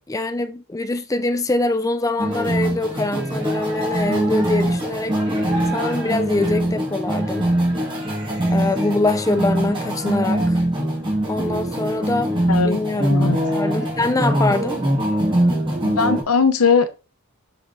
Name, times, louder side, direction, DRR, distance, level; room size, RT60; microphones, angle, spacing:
voice 1, 0.1-7.5 8.5-10.6 11.3-14.8, left 2 dB, 15° left, 0.4 m, -24 dB
sound 1, 2.2-16.2, right 1 dB, 25° right, 2.5 m, -22 dB
voice 2, 12.5-12.8 13.1-13.4 15.8-16.9, left 5 dB, 80° left, 0.9 m, -19 dB
7.1 x 5.9 x 3.5 m
head